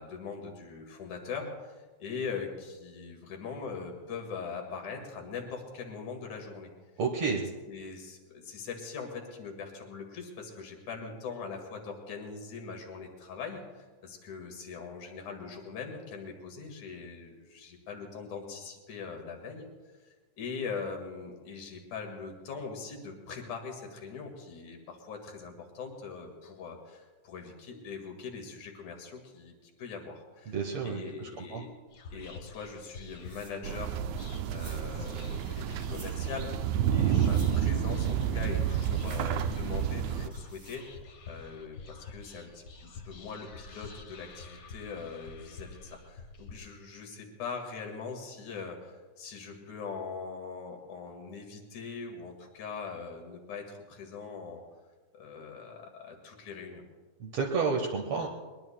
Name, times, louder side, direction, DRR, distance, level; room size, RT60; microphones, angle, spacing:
voice 1, 0.0-6.7 7.2-7.4 7.7-19.7 20.0-30.6 30.8-31.7 32.1-41.0 41.3-54.6 55.1-56.8, left 5 dB, 80° left, 3 dB, 3.3 m, -41 dB
voice 2, 7.0-7.4 30.5-31.7 57.2-58.3, right 5 dB, 65° right, 0 dB, 2.1 m, -31 dB
Whispering, 31.9-46.5, left 4 dB, 50° left, 1.3 m, -48 dB
sound 1, 32.6-41.0, right 2 dB, 30° right, 2.4 m, -55 dB
sound 2, 33.6-40.3, right 9 dB, 80° right, 1.8 m, -29 dB
21.5 x 21.5 x 2.2 m, 1.3 s
omnidirectional pair, 3.4 m